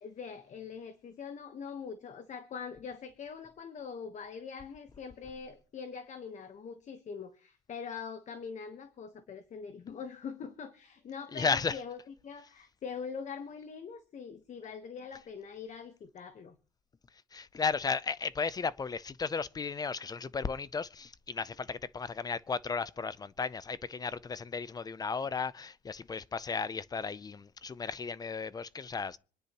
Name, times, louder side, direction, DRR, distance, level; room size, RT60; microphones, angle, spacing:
voice 1, 0.0-16.6, left 6 dB, 45° left, 1.1 m, -43 dB
voice 2, 11.3-11.8 17.3-29.2, left 5 dB, 25° left, 0.5 m, -34 dB
26.0 x 9.9 x 3.0 m
cardioid pair, 110°, 17 cm